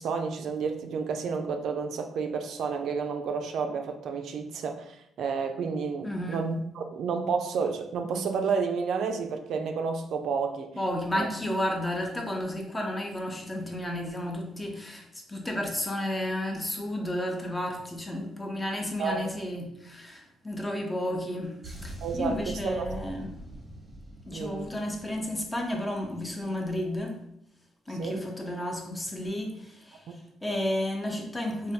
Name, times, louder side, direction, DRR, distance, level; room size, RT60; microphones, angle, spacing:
voice 1, 0.0-10.7 11.1-11.3 19.0-19.3 22.0-22.4 22.6-22.9 24.3-24.7 28.0-28.2 30.1-30.2, right 5 dB, 70° right, 5 dB, 0.3 m, -30 dB
voice 2, 6.0-6.4 10.8-23.4 24.3-27.2 27.9-31.7, left 1 dB, 15° left, 1 dB, 0.6 m, -32 dB
sound 1, 21.6-26.2 26.4-26.7, right 1 dB, 20° right, 0.8 m, -43 dB
3.2 x 2.2 x 2.7 m, 0.76 s
cardioid pair, 90°, 0 cm